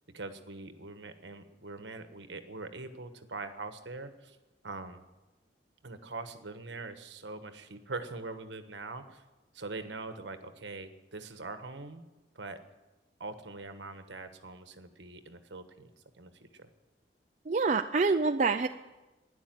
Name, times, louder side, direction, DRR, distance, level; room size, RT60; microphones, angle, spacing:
voice 1, 0.1-4.4 4.6-5.0 5.8-9.2 9.5-12.0 12.3-12.6 13.2-15.9 16.2-16.7, right 3 dB, 70° right, 9 dB, 1.3 m, -43 dB
voice 2, 17.5-18.7, right 4 dB, 40° right, 6 dB, 0.4 m, -26 dB
12.5 x 10.0 x 9.0 m, 1.1 s
head